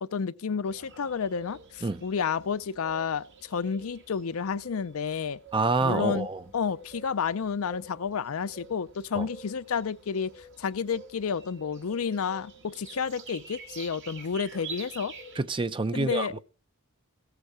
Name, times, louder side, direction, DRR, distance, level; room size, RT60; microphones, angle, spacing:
voice 1, 0.0-5.4 5.8-6.3 6.5-15.1 15.9-16.3, left 6 dB, 70° left, 0.5 m, -31 dB
sound 1, 0.6-15.4, right 3 dB, 60° right, 1.9 m, -47 dB
voice 2, 5.5-6.4 9.1-9.3 15.4-16.4, right 3 dB, 25° right, 0.5 m, -27 dB
15.0 x 8.1 x 4.8 m
head